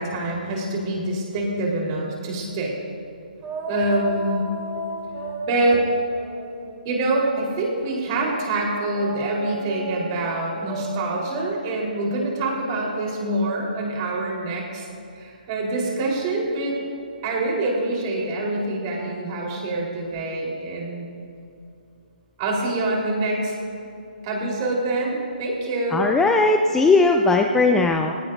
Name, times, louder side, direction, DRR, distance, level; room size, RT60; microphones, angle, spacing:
voice 1, 0.0-2.7 3.7-4.5 5.4-5.8 6.8-14.9 15.1-16.7 17.2-21.1 22.4-23.5 24.2-26.0, right 2 dB, 35° right, -2 dB, 4.3 m, -25 dB
sound 1, 3.4-8.1 8.9-13.6, right 2 dB, 20° right, 4.1 m, -35 dB
voice 2, 25.9-28.1, left 3 dB, 10° left, 4 dB, 0.5 m, -18 dB
20.0 x 18.5 x 2.7 m, 2.6 s
hypercardioid pair, 145°, 5 cm